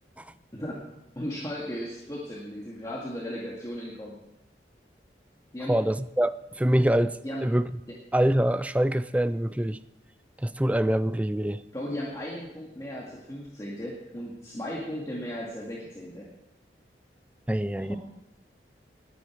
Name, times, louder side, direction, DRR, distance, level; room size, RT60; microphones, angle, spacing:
voice 1, 0.5-4.1 5.5-5.8 7.2-7.4 11.7-16.3 17.8-18.0, equal, 20° left, -4 dB, 2.0 m, -36 dB
voice 2, 5.7-7.7 8.1-9.8 10.4-11.6 17.5-18.0, right 1 dB, 10° right, 14 dB, 0.4 m, -25 dB
19.5 x 9.7 x 4.6 m, 0.90 s
head